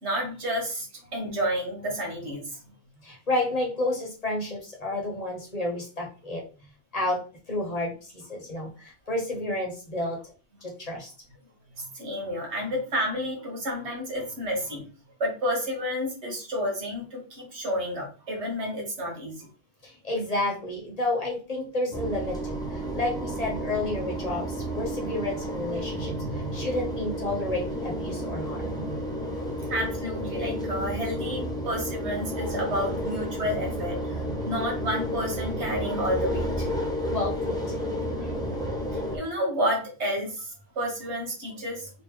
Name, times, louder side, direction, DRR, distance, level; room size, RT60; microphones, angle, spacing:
voice 1, 0.0-2.6 11.8-14.8 15.2-19.5 29.0-29.1 29.4-36.7 38.9-41.9, equal, 90° right, -1 dB, 1.7 m, -30 dB
voice 2, 3.0-6.5 6.9-10.2 10.6-11.1 19.8-28.7 37.1-37.7 38.2-38.4, left 2 dB, 35° left, -2 dB, 1.2 m, -31 dB
sound 1, 21.9-39.2, equal, 5° left, 0.6 m, -31 dB
3.5 x 2.8 x 3.1 m, 0.36 s
omnidirectional pair, 1.1 m